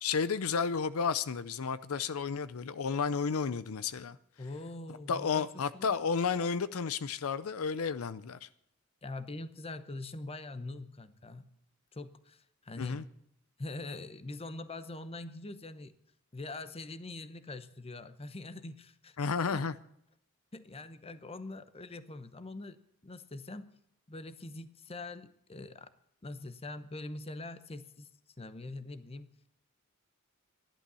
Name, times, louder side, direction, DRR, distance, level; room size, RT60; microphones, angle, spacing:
voice 1, 0.0-4.2 5.1-8.5 12.8-13.0 19.2-19.7, left 5 dB, 80° left, 15 dB, 0.5 m, -32 dB
voice 2, 4.4-5.5 5.7-6.0 9.0-11.5 11.9-13.0 13.6-15.9 16.3-19.2 19.5-19.6 20.5-23.7 24.1-25.9 26.2-28.1 28.4-29.3, left 2 dB, 30° left, 12 dB, 0.8 m, -43 dB
13.0 x 11.5 x 6.9 m, 0.73 s
head